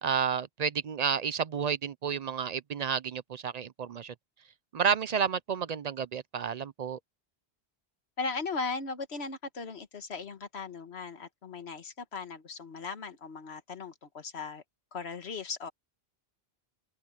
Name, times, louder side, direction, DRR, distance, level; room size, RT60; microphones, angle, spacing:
voice 1, 0.0-4.1 4.7-7.0, right 7 dB, 50° right, 0.5 m, -31 dB
voice 2, 8.2-14.6 14.9-15.7, left 4 dB, 85° left, 1.6 m, -38 dB
open air
omnidirectional pair, 1.1 m